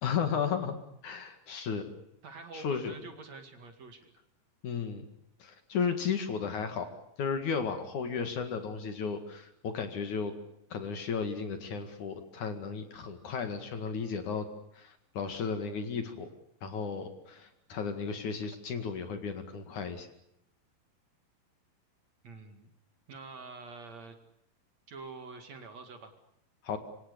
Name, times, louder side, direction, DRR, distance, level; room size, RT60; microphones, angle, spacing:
voice 1, 0.0-1.8 2.5-2.9 4.6-5.0 5.4-6.9 7.2-10.3 10.7-14.5 14.7-16.3 16.6-20.1 26.6-26.8, left 6 dB, 55° left, 7 dB, 3.2 m, -34 dB
voice 2, 2.2-4.1 22.2-22.7 23.1-24.2 24.9-26.1, right 4 dB, 50° right, 7 dB, 3.1 m, -46 dB
26.5 x 25.5 x 6.8 m, 0.76 s
omnidirectional pair, 4.5 m